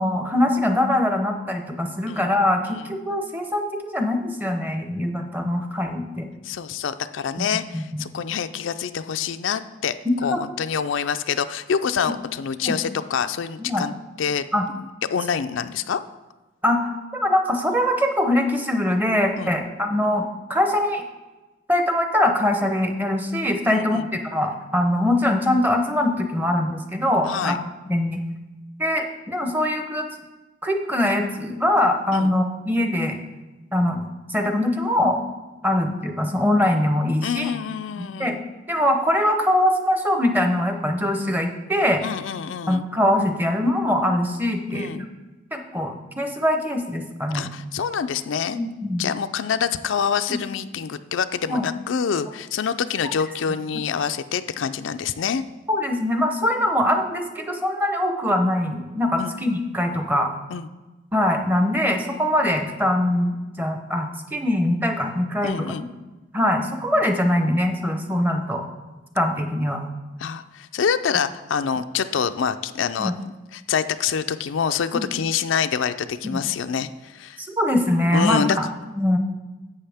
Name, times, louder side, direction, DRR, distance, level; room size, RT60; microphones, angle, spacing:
voice 1, 0.0-6.3 7.4-8.0 10.3-10.4 12.6-12.8 13.6-13.9 14.5-14.6 16.6-20.2 20.5-21.0 21.7-27.6 27.9-28.2 28.8-30.0 30.6-33.2 33.7-34.0 34.3-35.2 35.6-37.5 38.2-38.4 38.7-42.0 42.7-45.1 45.5-47.5 48.5-49.1 50.3-50.4 51.5-51.7 55.7-60.3 61.1-65.7 66.3-68.6 69.2-69.8 73.0-73.1 74.9-75.1 76.3-76.4 77.4-78.7 79.0-79.2, left 1 dB, 10° right, 5 dB, 0.7 m, -22 dB
voice 2, 6.4-10.0 10.2-13.9 14.2-14.5 15.1-16.0 19.4-19.5 23.7-24.1 27.3-27.6 32.1-32.3 37.2-38.4 42.0-42.9 44.7-45.1 47.3-48.6 49.0-55.4 59.2-59.3 60.5-60.7 65.4-65.8 70.2-73.1 73.5-77.4 78.1-78.6, left 7 dB, 85° left, 10 dB, 0.4 m, -26 dB
11.0 x 7.8 x 3.5 m, 1.1 s
head